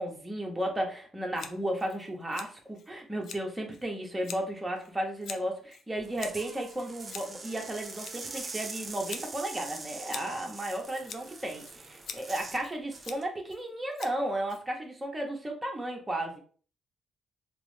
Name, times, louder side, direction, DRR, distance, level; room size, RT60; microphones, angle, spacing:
voice 1, 0.0-11.6 12.1-16.4, right 1 dB, 15° right, 1 dB, 0.8 m, -34 dB
Scissors, 1.3-15.1, left 6 dB, 65° left, 0.4 m, -47 dB
sound 1, 6.0-12.6 12.9-13.2, right 3 dB, 30° right, 0.5 m, -43 dB
2.9 x 2.0 x 3.2 m, 0.42 s
cardioid pair, 90°, 0 cm